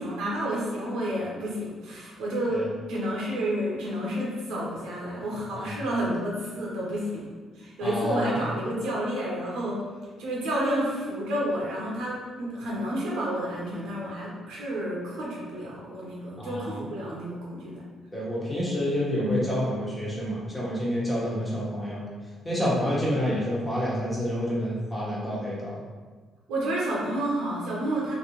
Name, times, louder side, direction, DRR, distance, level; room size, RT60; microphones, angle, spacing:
voice 1, 0.0-7.3 7.6-9.8 10.2-17.8 19.2-19.3 23.1-23.4 26.5-28.1, right 1 dB, 90° right, -4 dB, 0.9 m, -30 dB
voice 2, 5.5-5.8 7.8-8.4 16.4-16.9 18.1-22.0 22.4-25.8, equal, 20° left, -6 dB, 1.2 m, -28 dB
3.1 x 2.8 x 3.0 m, 1.4 s
cardioid pair, 90°, 0 cm